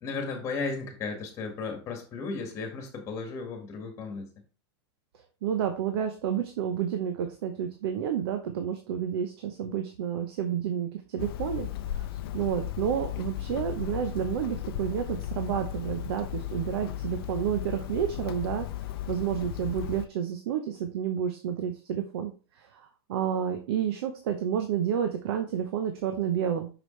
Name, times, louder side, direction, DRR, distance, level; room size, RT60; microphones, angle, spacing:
voice 1, 0.0-4.3, left 4 dB, 20° left, 3 dB, 1.9 m, -35 dB
voice 2, 5.4-18.7 19.1-26.7, right 9 dB, 65° right, 6 dB, 0.9 m, -30 dB
Hammer, 11.2-20.1, left 13 dB, 60° left, 0.5 m, -35 dB
6.1 x 5.0 x 3.3 m, 0.35 s
supercardioid pair, 150°, 14 cm